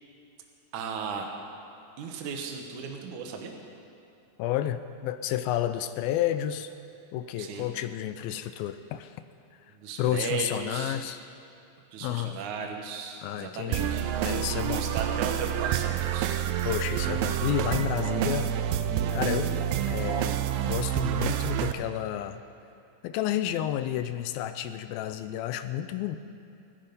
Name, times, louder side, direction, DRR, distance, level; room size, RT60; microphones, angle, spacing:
voice 1, 0.7-1.3 2.0-3.5 7.4-7.7 9.7-11.0 11.9-14.1 14.7-16.4, right 6 dB, 60° right, 3 dB, 2.4 m, -36 dB
voice 2, 4.4-6.7 7.1-9.2 10.0-11.2 12.0-12.3 13.2-13.9 14.2-14.9 16.7-18.5 19.1-19.5 19.9-22.4 23.0-26.2, left 12 dB, 80° left, 11 dB, 2.3 m, -31 dB
sound 1, 13.7-21.7, right 10 dB, 85° right, 2.1 m, -28 dB
23.5 x 10.0 x 5.4 m, 2.8 s
omnidirectional pair, 4.6 m